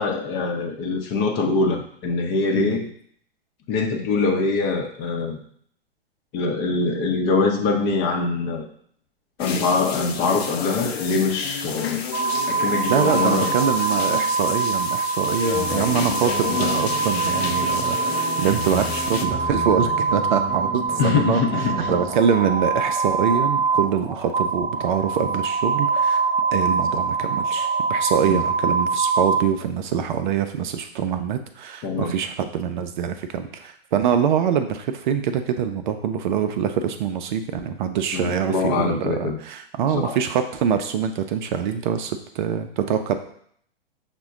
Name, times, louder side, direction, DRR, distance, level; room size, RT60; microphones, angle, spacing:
voice 1, 0.0-2.9 3.7-5.4 6.3-8.6 9.4-12.0 12.5-13.7 21.0-22.0 28.3-28.4 31.8-32.2 38.1-39.4 39.9-40.2, left 4 dB, 35° left, 2 dB, 0.7 m, -23 dB
sound 1, 9.4-19.3, left 6 dB, 80° left, 0.6 m, -30 dB
sound 2, 12.1-29.4, right 4 dB, 70° right, 0.8 m, -24 dB
voice 2, 12.9-21.6 21.9-26.2 26.5-43.2, right 8 dB, 50° right, 8 dB, 0.5 m, -24 dB
sound 3, 15.5-22.1, left 1 dB, 5° right, 1.1 m, -34 dB
5.8 x 2.2 x 3.6 m, 0.63 s
hypercardioid pair, 110°, 31 cm